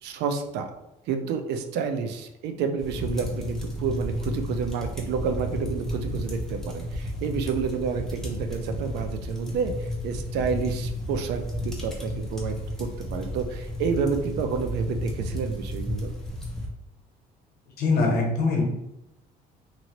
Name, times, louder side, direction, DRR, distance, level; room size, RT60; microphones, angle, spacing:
voice 1, 0.0-0.7 1.1-16.1, right 6 dB, 80° right, 7 dB, 0.4 m, -29 dB
sound 1, 2.8-16.7, left 1 dB, 5° left, 0.7 m, -32 dB
voice 2, 17.8-18.6, left 3 dB, 65° left, 0 dB, 0.9 m, -22 dB
2.9 x 2.5 x 2.9 m, 0.88 s
cardioid pair, 110°, 17 cm